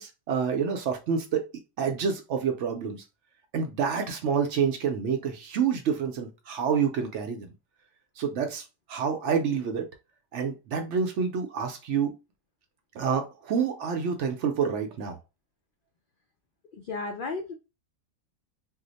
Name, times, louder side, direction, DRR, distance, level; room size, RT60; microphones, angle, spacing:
voice 1, 0.0-1.5 1.8-3.0 3.5-7.5 8.2-9.9 10.3-12.1 12.9-15.2, right 6 dB, 65° right, 0.8 m, -28 dB
voice 2, 16.7-17.5, left 3 dB, 80° left, 0.4 m, -34 dB
2.8 x 2.0 x 3.9 m
omnidirectional pair, 1.5 m